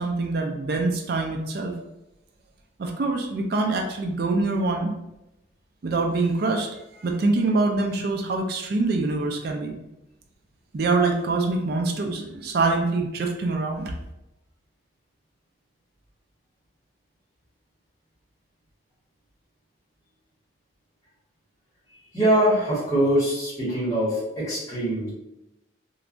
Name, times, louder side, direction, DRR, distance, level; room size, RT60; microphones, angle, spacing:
voice 1, 0.0-1.7 2.8-4.9 5.8-6.7 7.0-9.7 10.7-13.9, right 3 dB, 50° right, 2 dB, 0.3 m, -24 dB
voice 2, 22.1-25.1, right 1 dB, 15° left, -9 dB, 1.1 m, -23 dB
3.0 x 2.2 x 2.5 m, 0.90 s
head